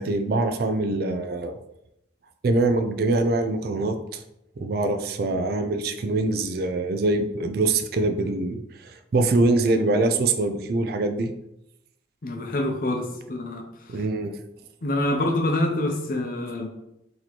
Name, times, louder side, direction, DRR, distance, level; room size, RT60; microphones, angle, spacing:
voice 1, 0.0-1.6 2.4-4.2 4.6-11.3 13.9-14.3, right 2 dB, 50° right, 8 dB, 0.3 m, -24 dB
voice 2, 12.2-13.6 14.8-16.7, left 1 dB, 45° left, 2 dB, 0.6 m, -26 dB
3.0 x 2.9 x 4.0 m, 0.83 s
head